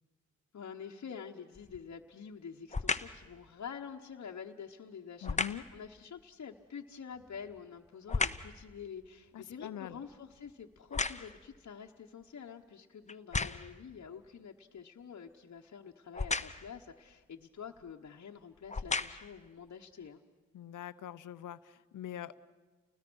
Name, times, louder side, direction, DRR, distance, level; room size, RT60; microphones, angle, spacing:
voice 1, 0.5-20.2, left 7 dB, 60° left, 1 dB, 1.1 m, -47 dB
sound 1, 1.5-1.9 2.7-3.2 5.2-5.7 7.1-8.6 9.0-11.5 12.2-12.3 13.1-13.8 16.1-16.7 17.8-17.9 18.6-19.4 20.0-20.1, left 3 dB, 25° left, 0.9 m, -35 dB
voice 2, 5.2-5.7 9.3-10.0 20.5-22.4, left 11 dB, 85° left, 15 dB, 0.7 m, -43 dB
30.0 x 20.0 x 6.2 m, 1.3 s
cardioid pair, 60°, 30 cm